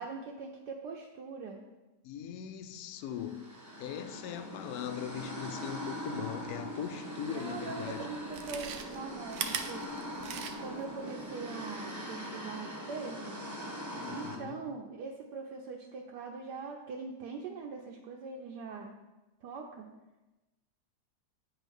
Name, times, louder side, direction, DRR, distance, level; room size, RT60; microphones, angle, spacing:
voice 1, 0.0-1.6 7.3-9.9 10.6-13.4 14.1-18.9 19.4-19.9, right 4 dB, 70° right, 1.3 m, -42 dB
voice 2, 2.0-3.5 3.8-8.2 14.0-14.7, left 10 dB, 70° left, 0.9 m, -40 dB
sound 1, 3.1-14.4, equal, 20° right, 0.4 m, -41 dB
Chewing mastication, 7.4-7.5 8.2-10.9 11.2-11.3, right 8 dB, 85° right, 1.4 m, -39 dB
9.2 x 4.6 x 5.3 m
omnidirectional pair, 2.0 m